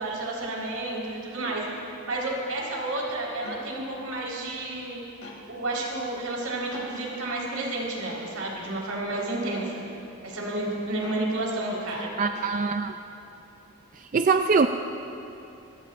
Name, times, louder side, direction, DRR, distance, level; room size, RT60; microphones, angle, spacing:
voice 1, 0.0-1.6 2.1-5.0 5.5-9.8 10.2-12.1, right 2 dB, 85° right, -4 dB, 4.3 m, -31 dB
sound 1, 1.4-1.6 3.4-3.6 5.2-5.4 6.7-6.9 8.0-8.3 9.5-9.7 11.0-11.2 12.4-12.6, left 1 dB, 75° left, 2.5 m, -42 dB
voice 2, 12.2-12.9 14.0-14.7, right 4 dB, 35° right, 7 dB, 0.3 m, -23 dB
26.0 x 16.0 x 2.5 m, 2.9 s
head